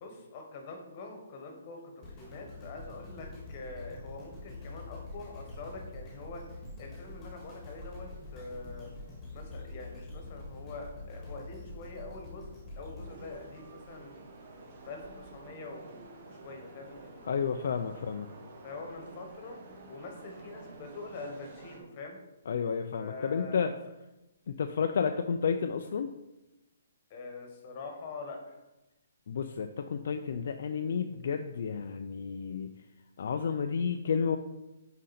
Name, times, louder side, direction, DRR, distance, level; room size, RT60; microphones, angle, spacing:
voice 1, 0.0-6.5 6.8-8.9 9.3-12.5 12.8-14.2 14.8-17.4 17.9-18.0 18.6-19.6 19.9-22.2 23.0-23.7 27.1-28.6, left 3 dB, 30° left, 3 dB, 1.4 m, -44 dB
sound 1, 2.0-14.2 14.8-14.9, left 2 dB, 10° left, 2.0 m, -45 dB
sound 2, 13.0-21.8, right 3 dB, 40° right, 1.3 m, -50 dB
voice 2, 17.3-18.3 22.5-23.7 24.5-26.1 29.3-32.7 33.2-34.4, left 6 dB, 55° left, 6 dB, 0.4 m, -31 dB
6.4 x 5.2 x 4.3 m, 0.99 s
hypercardioid pair, 170°, 0 cm